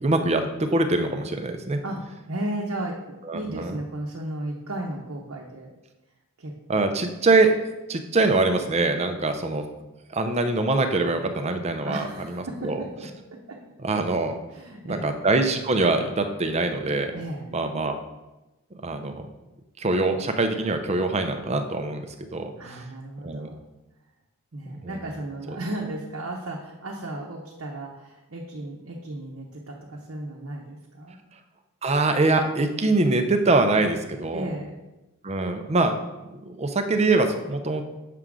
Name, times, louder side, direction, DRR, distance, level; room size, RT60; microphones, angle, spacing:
voice 1, 0.0-1.8 3.3-3.8 6.7-7.6 7.9-9.7 10.1-12.8 13.8-14.4 14.9-17.1 17.5-17.9 18.8-19.3 19.8-22.1 22.3-22.5 23.2-23.5 24.8-25.0 31.8-34.5 35.2-36.0 36.3-37.8, right 2 dB, 30° right, 6 dB, 0.5 m, -23 dB
voice 2, 1.8-5.7 6.4-6.9 11.8-13.6 14.5-15.2 17.1-17.5 22.5-23.6 24.5-31.2 34.3-34.7, right 1 dB, 65° right, -1 dB, 0.8 m, -35 dB
6.7 x 3.7 x 6.1 m, 1.0 s
head